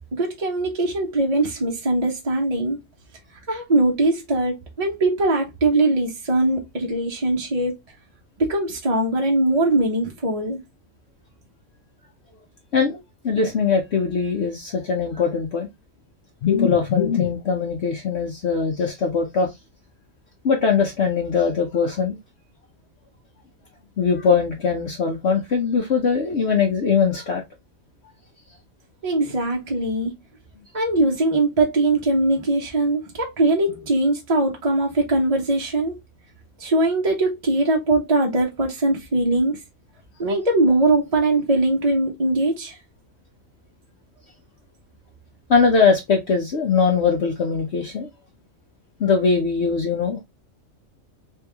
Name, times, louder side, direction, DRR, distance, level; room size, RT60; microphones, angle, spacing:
voice 1, 0.1-2.8 3.5-7.7 8.4-10.6 29.0-30.1 30.7-35.9 36.6-39.6 40.2-42.7, right 2 dB, 30° right, 0.8 m, -21 dB
voice 2, 13.2-15.7 16.4-19.5 20.4-22.2 24.0-27.4 45.5-48.1 49.0-50.2, left 5 dB, 55° left, 0.9 m, -21 dB
3.4 x 3.1 x 3.4 m
omnidirectional pair, 1.5 m